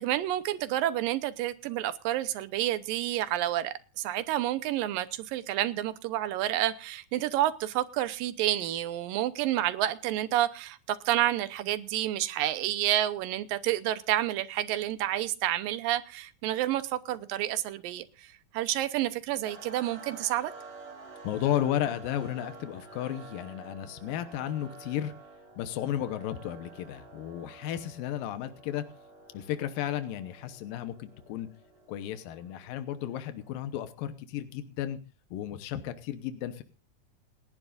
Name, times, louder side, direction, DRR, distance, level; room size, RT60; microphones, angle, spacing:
voice 1, 0.0-20.5, right 13 dB, 85° right, 2.5 m, -29 dB
sound 1, 19.4-33.5, right 3 dB, 65° right, 6.4 m, -50 dB
voice 2, 21.2-25.1 25.6-28.8 29.3-31.5 31.9-35.0 35.3-36.6, left 11 dB, 85° left, 2.7 m, -33 dB
27.5 x 10.5 x 2.5 m
omnidirectional pair, 4.0 m